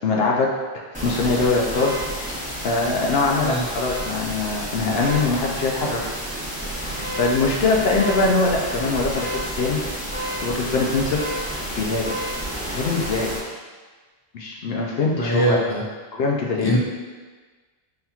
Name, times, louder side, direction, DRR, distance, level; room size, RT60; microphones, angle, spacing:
voice 1, 0.0-0.5 1.0-1.9 2.3-2.4 2.6-6.0 7.2-9.8 10.4-11.4 11.7-12.1 12.7-13.3 14.3-15.6 16.1-16.7, left 3 dB, 75° left, -2 dB, 0.8 m, -22 dB
sound 1, 0.9-13.4, right 1 dB, 10° right, 0.8 m, -30 dB
voice 2, 15.2-15.8 16.6-16.8, right 1 dB, 35° left, -3 dB, 0.4 m, -22 dB
5.5 x 2.9 x 2.3 m, 1.4 s
omnidirectional pair, 1.0 m